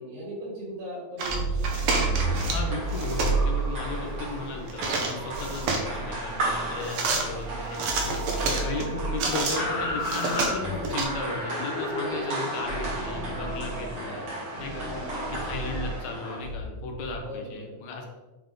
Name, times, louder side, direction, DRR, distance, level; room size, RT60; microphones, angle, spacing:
voice 1, 0.0-1.6 5.9-6.2 7.0-7.3 8.4-8.8 12.3-13.1 14.6-15.4 17.2-17.8, equal, 90° right, -5 dB, 3.5 m, -39 dB
sound 1, 1.1-7.6 7.8-11.2 12.6-13.9 14.5-17.2, right 2 dB, 50° left, 1.1 m, -32 dB
sound 2, 1.2-2.6 2.9-3.4 4.7-6.0 6.8-7.2 7.7-9.6 10.0-11.0, right 3 dB, 70° right, 1.4 m, -29 dB
sound 3, 1.6-16.5, right 1 dB, 50° right, 2.7 m, -35 dB
voice 2, 2.5-8.2 8.6-14.2 14.6-14.9 15.3-18.1, left 3 dB, 75° left, 2 dB, 2.2 m, -36 dB
7.1 x 3.6 x 3.7 m, 1.1 s
omnidirectional pair, 3.3 m